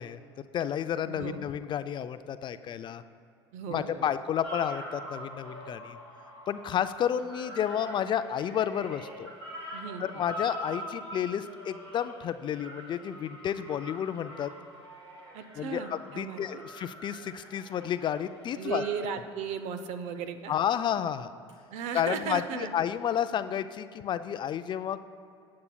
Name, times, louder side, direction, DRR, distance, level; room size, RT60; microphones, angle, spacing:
voice 1, 0.0-3.0 3.7-6.0 6.5-9.3 10.0-14.5 15.6-18.8 20.5-21.3 21.9-25.0, left 9 dB, 35° left, 12 dB, 0.4 m, -31 dB
voice 2, 1.1-1.4 3.5-4.1 9.7-10.0 15.3-16.6 18.6-20.5 21.7-22.7, right 7 dB, 55° right, 10 dB, 0.8 m, -36 dB
sound 1, 4.4-20.0 21.5-21.6, equal, 85° right, 1.9 m, -44 dB
18.5 x 8.5 x 2.3 m, 2.5 s
figure-of-eight pair, 70°, 14 cm